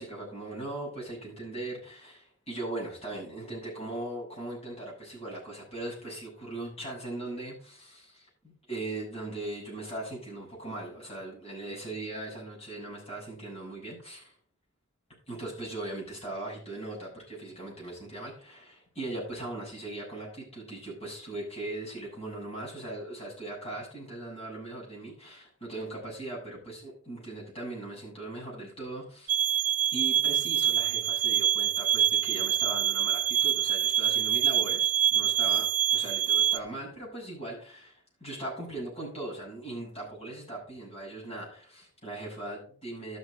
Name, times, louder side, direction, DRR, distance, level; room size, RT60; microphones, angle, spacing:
voice 1, 0.0-14.3 15.3-29.7 29.9-43.2, right 2 dB, 30° left, -4 dB, 6.9 m, -39 dB
sound 1, 29.3-36.6, right 10 dB, 35° right, 0.6 m, -25 dB
12.5 x 6.9 x 5.2 m, 0.43 s
head